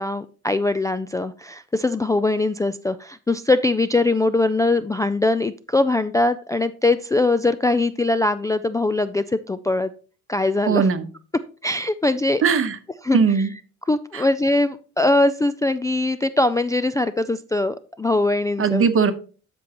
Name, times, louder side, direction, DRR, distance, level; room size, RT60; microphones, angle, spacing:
voice 1, 0.0-9.9 10.3-10.9 11.6-12.4 13.0-13.2 13.9-18.9, left 2 dB, 10° left, 9 dB, 0.3 m, -21 dB
voice 2, 10.7-11.1 12.4-12.8 13.1-13.5 14.1-14.2 18.6-19.1, right 6 dB, 45° right, 10 dB, 1.0 m, -19 dB
12.5 x 5.3 x 2.9 m, 0.38 s
cardioid pair, 90°, 30 cm